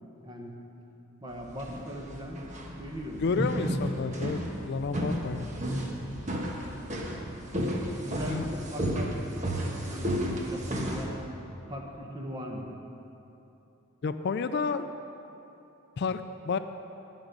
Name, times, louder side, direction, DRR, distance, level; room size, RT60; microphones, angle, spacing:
voice 1, 0.2-0.5 1.2-2.4 2.8-3.2 7.5-11.1 11.7-12.7, equal, 20° right, 0 dB, 1.2 m, -39 dB
sound 1, 1.4-11.0, equal, 35° right, 1.2 m, -33 dB
voice 2, 3.2-5.5 8.3-8.5 14.0-14.9 16.0-16.6, left 4 dB, 55° left, 10 dB, 0.4 m, -30 dB
18.0 x 6.1 x 5.3 m, 2.9 s
head